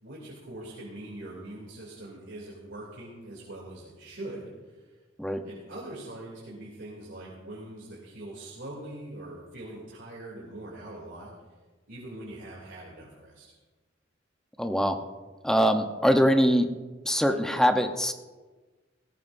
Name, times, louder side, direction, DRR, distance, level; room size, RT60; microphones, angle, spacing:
voice 1, 0.0-5.0 5.4-11.3 11.9-13.5, right 1 dB, 75° right, -4 dB, 3.0 m, -42 dB
voice 2, 14.6-15.0 15.4-16.7 17.0-18.1, equal, 5° left, 5 dB, 0.8 m, -23 dB
19.0 x 16.5 x 2.7 m, 1.3 s
head